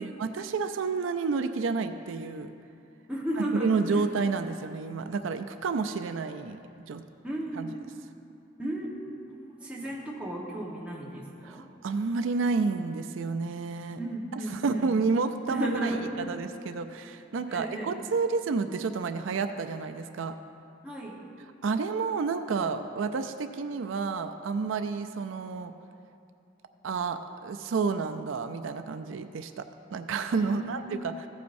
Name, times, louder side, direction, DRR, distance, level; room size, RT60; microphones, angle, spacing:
voice 1, 0.0-2.5 3.4-6.6 6.9-7.0 7.6-7.7 11.4-14.0 14.6-15.9 16.2-20.4 21.6-25.7 26.8-29.6 29.9-31.3, right 4 dB, 80° right, 8 dB, 0.4 m, -30 dB
voice 2, 3.1-4.1 7.2-7.8 8.6-11.7 14.0-14.9 15.5-16.2 17.4-17.9 20.8-21.2 30.4-30.9, right 1 dB, 5° right, -4 dB, 1.2 m, -34 dB
15.5 x 8.4 x 2.6 m, 2.6 s
head